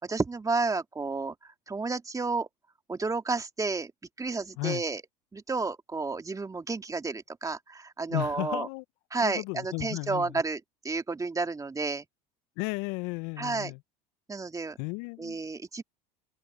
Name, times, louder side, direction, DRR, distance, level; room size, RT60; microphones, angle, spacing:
voice 1, 0.0-2.5 2.9-3.9 4.2-5.0 5.3-8.7 9.1-12.0 13.4-13.7 14.3-14.8 15.2-15.8, right 3 dB, 15° right, 2.4 m, -31 dB
voice 2, 8.1-8.8 9.2-10.4 12.6-13.8 14.8-15.4, left 27 dB, 65° left, 1.4 m, -34 dB
hypercardioid pair, 80°, 20 cm